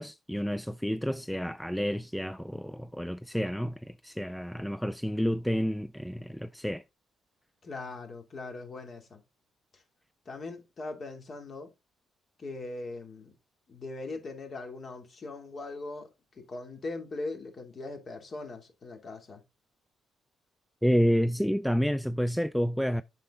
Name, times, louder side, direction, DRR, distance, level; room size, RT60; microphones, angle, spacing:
voice 1, 0.0-6.8 20.8-23.0, equal, ahead, 0.4 m, -29 dB
voice 2, 7.6-9.2 9.7-9.8 10.3-11.7 12.4-13.3 13.7-19.4, left 3 dB, 45° left, 2.6 m, -40 dB
7.5 x 6.0 x 3.7 m
cardioid pair, 90°, 0 cm